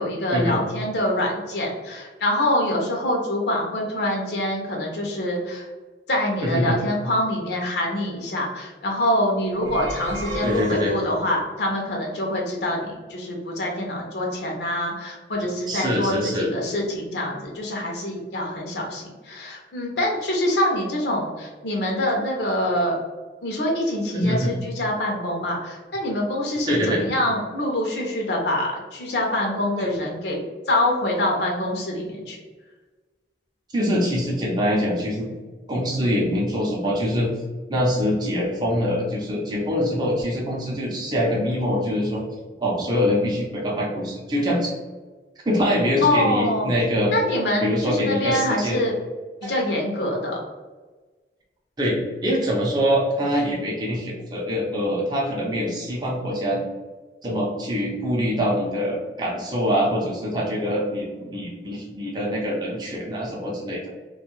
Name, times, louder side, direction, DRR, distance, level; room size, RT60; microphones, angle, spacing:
voice 1, 0.0-5.7 6.1-23.0 23.4-32.4 46.0-46.7 47.1-48.9 49.4-50.4, left 1 dB, 70° left, 0 dB, 0.6 m, -25 dB
voice 2, 6.4-6.8 10.4-10.9 15.7-16.5 24.1-24.5 26.7-27.0 33.7-35.3 35.7-37.3 37.7-42.2 42.6-44.7 45.5-47.1 47.6-48.8 49.4-49.5 51.8-56.6 57.2-63.8, equal, 25° right, -3 dB, 0.5 m, -24 dB
sound 1, 9.5-11.4, right 2 dB, 75° right, 0.6 m, -33 dB
2.5 x 2.2 x 3.0 m, 1.3 s
head